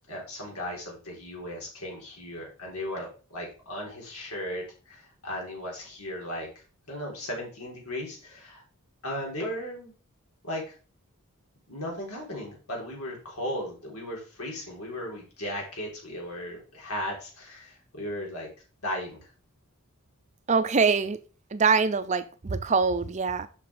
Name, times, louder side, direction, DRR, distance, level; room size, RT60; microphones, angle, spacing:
voice 1, 0.1-6.5 6.9-8.6 9.0-9.9 10.4-10.8 11.7-18.5 18.8-19.3, left 1 dB, 85° left, 3.8 m, -36 dB
voice 2, 20.5-21.2 21.5-23.5, right 5 dB, 30° right, 0.5 m, -24 dB
6.0 x 6.0 x 4.9 m
head